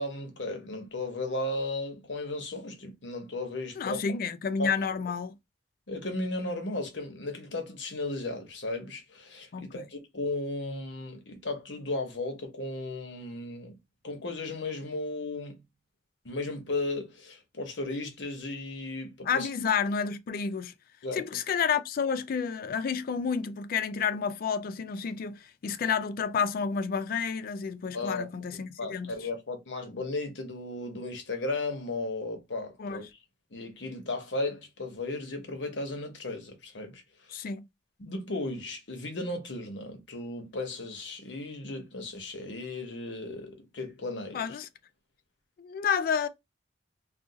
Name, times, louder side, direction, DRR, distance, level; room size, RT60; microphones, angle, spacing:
voice 1, 0.0-4.0 4.6-4.7 5.9-13.8 14.0-15.6 16.2-19.5 21.0-21.2 27.9-28.3 28.8-33.0 33.5-37.4 38.0-44.6, left 2 dB, 75° left, 0.9 m, -35 dB
voice 2, 3.8-5.4 9.5-9.9 19.3-20.7 21.1-29.1 32.8-33.0 37.3-37.6 44.3-44.7 45.6-46.3, left 6 dB, 50° left, 0.3 m, -30 dB
2.5 x 2.4 x 3.7 m
head